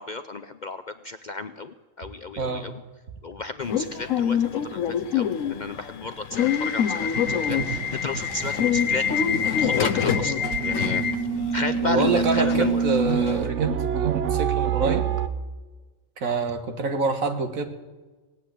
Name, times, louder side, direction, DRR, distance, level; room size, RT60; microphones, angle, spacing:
voice 1, 0.0-2.8 3.2-9.1 9.3-11.0 11.5-12.8, left 3 dB, 55° left, 10 dB, 0.5 m, -33 dB
Subway metro underground / Alarm, 3.6-13.5, left 8 dB, 80° left, 1.2 m, -26 dB
sound 1, 7.1-15.3, right 7 dB, 65° right, 1.0 m, -27 dB
voice 2, 11.8-15.1 16.2-17.6, right 4 dB, 85° right, 7 dB, 1.9 m, -26 dB
18.0 x 8.5 x 9.2 m, 1.3 s
omnidirectional pair, 1.4 m